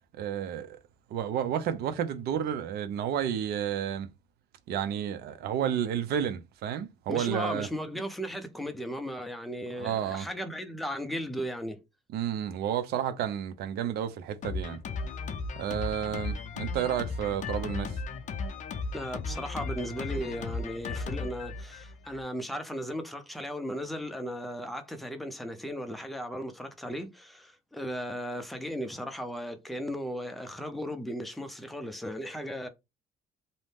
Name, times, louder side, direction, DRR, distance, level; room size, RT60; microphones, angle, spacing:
voice 1, 0.2-0.8 1.1-4.1 4.7-7.7 9.8-10.3 12.1-14.8 15.6-18.0, right 9 dB, 70° right, 0.5 m, -31 dB
voice 2, 7.1-11.8 18.9-32.7, equal, ahead, 0.5 m, -36 dB
Drum kit, 14.4-22.2, left 4 dB, 50° left, 0.5 m, -36 dB
2.6 x 2.0 x 3.3 m
cardioid pair, 110°, 17 cm